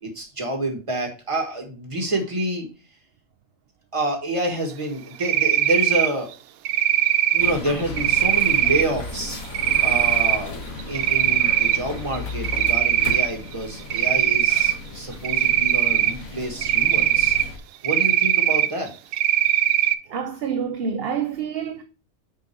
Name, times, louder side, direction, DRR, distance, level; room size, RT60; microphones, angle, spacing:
voice 1, 0.0-2.7 3.9-6.3 7.3-9.4 9.8-10.5 10.9-17.4 17.8-18.9, right 1 dB, 25° right, 1.8 m, -28 dB
Cricket, 5.2-6.1 6.7-7.5 8.0-8.8 9.5-10.4 10.8-11.8 12.1-13.3 13.9-14.7 15.2-16.1 16.6-17.4 17.8-18.7 19.1-19.9, right 12 dB, 90° right, 1.0 m, -20 dB
sound 1, 7.4-17.6, left 3 dB, 75° left, 1.6 m, -35 dB
voice 2, 20.1-21.8, right 7 dB, 55° right, 0.8 m, -27 dB
6.1 x 5.2 x 4.7 m
omnidirectional pair, 1.4 m